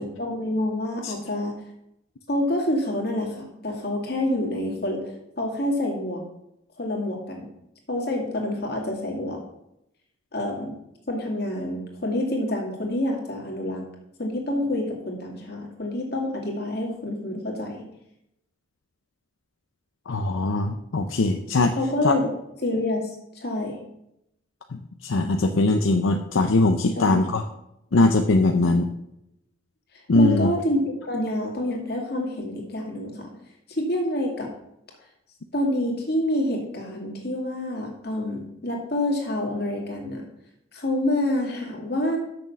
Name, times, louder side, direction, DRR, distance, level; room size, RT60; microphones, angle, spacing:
voice 1, 0.0-1.6 2.3-5.1 5.4-6.2 6.8-7.5 7.9-9.4 10.3-10.7 11.1-13.8 14.2-17.9 21.8-22.3 22.6-23.8 27.0-27.2 30.1-33.3 33.7-34.5 35.5-40.3 40.7-42.2, left 1 dB, 50° left, 0 dB, 2.3 m, -27 dB
voice 2, 20.1-21.7 22.0-22.1 24.7-27.4 27.9-28.9 30.1-30.5, left 2 dB, 80° left, 5 dB, 0.6 m, -21 dB
6.6 x 6.3 x 6.9 m, 0.82 s
head